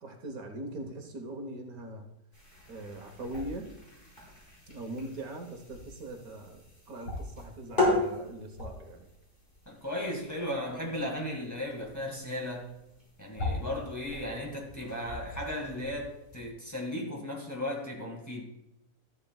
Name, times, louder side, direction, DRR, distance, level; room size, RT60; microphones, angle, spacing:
voice 1, 0.0-2.1 2.7-3.7 4.7-9.1, right 1 dB, 70° right, 1.6 m, -41 dB
sound 1, 2.3-16.5, left 2 dB, 30° left, 4.6 m, -38 dB
sound 2, 3.2-3.6 4.8-4.9 5.1-5.2 5.5-5.8 6.9-7.4 7.9-8.0 8.3-8.9 10.2-10.4 11.0-11.3 11.7-11.9 12.4-12.5 12.7-12.8 13.3-14.3 14.6-14.7 15.0-15.5 15.7-15.9, left 2 dB, 85° left, 3.3 m, -38 dB
voice 2, 9.7-12.8 13.2-18.4, left 1 dB, 10° left, 2.0 m, -36 dB
13.0 x 11.5 x 2.4 m
omnidirectional pair, 1.7 m